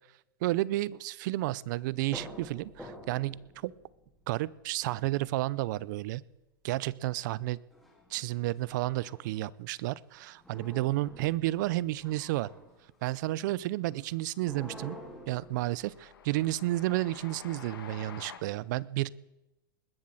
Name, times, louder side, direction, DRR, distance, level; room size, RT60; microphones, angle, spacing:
voice 1, 0.4-3.7 4.3-6.2 6.6-7.6 8.1-12.5 13.0-15.0 15.3-19.1, right 17 dB, 55° right, 22 dB, 0.5 m, -31 dB
sound 1, 2.1-5.5 7.7-9.7 10.1-13.1 14.3-17.8, equal, ahead, 3.3 m, -50 dB
Train, 12.7-13.2 13.5-18.4, left 7 dB, 90° left, 1.8 m, -50 dB
20.5 x 7.4 x 7.6 m, 0.96 s
hypercardioid pair, 135°, 12 cm